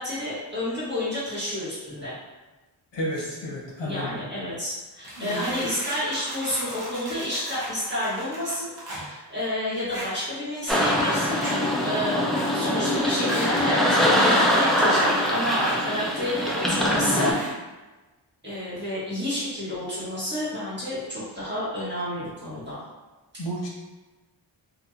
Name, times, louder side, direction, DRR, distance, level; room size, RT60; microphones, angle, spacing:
voice 1, 0.0-2.2 3.2-3.4 3.8-17.3 18.4-22.8 23.3-23.4, left 1 dB, 25° right, -11 dB, 1.3 m, -30 dB
voice 2, 2.9-4.2 5.2-5.4 23.4-23.7, equal, 70° left, -3 dB, 0.7 m, -31 dB
sound 1, 5.0-9.1 9.7-10.3 10.6-10.9 11.4-11.7 12.3-12.7 13.3-13.7 14.9-15.1 15.5-15.8 16.4-16.7 17.3-17.5, right 1 dB, 55° right, 0.9 m, -36 dB
sound 2, 10.7-17.3, equal, ahead, 0.4 m, -23 dB
2.8 x 2.5 x 2.4 m, 1.2 s
wide cardioid pair, 100°, 45 cm